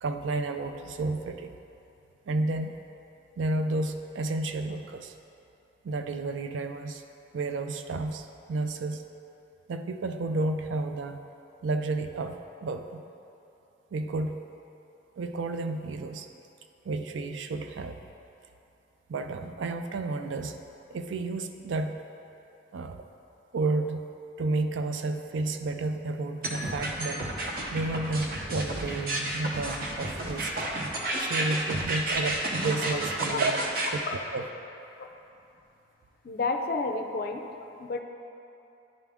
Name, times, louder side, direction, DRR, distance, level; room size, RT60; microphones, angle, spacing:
voice 1, 0.0-1.5 2.3-2.7 3.4-5.1 5.8-7.0 7.3-9.0 9.7-11.2 11.6-13.0 13.9-14.4 15.2-16.3 16.9-18.0 19.1-20.6 20.9-22.0 22.7-23.0 23.5-24.0 24.4-27.3 27.7-30.5 31.2-33.6 34.3-34.4, right 3 dB, 85° right, 7 dB, 0.4 m, -31 dB
sound 1, 26.4-33.9, right 2 dB, 50° right, 0.7 m, -31 dB
voice 2, 33.3-33.7 34.0-34.2 35.0-35.1 36.2-38.0, left 3 dB, 50° left, 5 dB, 0.4 m, -32 dB
10.5 x 3.6 x 3.5 m, 2.8 s
head